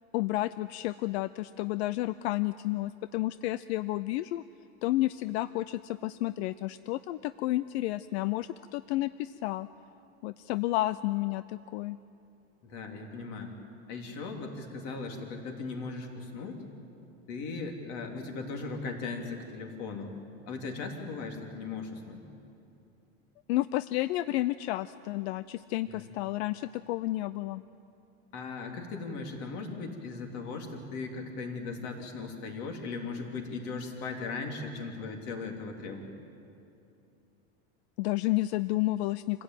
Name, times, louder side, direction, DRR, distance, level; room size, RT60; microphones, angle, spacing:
voice 1, 0.1-4.4 4.8-9.7 10.2-12.0 23.5-27.6 38.0-39.4, left 17 dB, 85° left, 14 dB, 0.6 m, -31 dB
voice 2, 12.6-13.5 13.9-16.6 17.3-20.2 20.5-22.2 25.9-26.1 28.3-36.1, left 4 dB, 50° left, 3 dB, 3.4 m, -38 dB
26.5 x 16.0 x 9.2 m, 2.7 s
cardioid pair, 175°, 32 cm